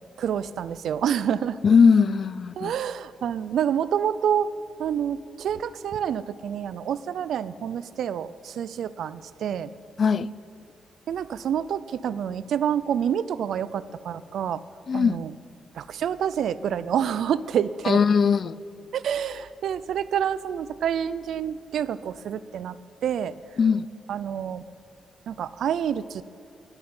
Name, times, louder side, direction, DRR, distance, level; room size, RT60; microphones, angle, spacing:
voice 1, 0.2-1.6 2.6-4.5 4.8-9.7 11.1-14.6 14.9-15.3 15.7-18.0 18.9-22.8 23.0-23.3 24.1-24.6 25.3-26.2, right 9 dB, 80° right, 17 dB, 0.4 m, -28 dB
voice 2, 1.6-2.7 10.0-10.3 14.9-15.2 17.8-18.6 23.6-23.9, left 6 dB, 50° left, 19 dB, 0.4 m, -19 dB
11.5 x 9.8 x 9.5 m, 2.7 s
cardioid pair, 110°, 0 cm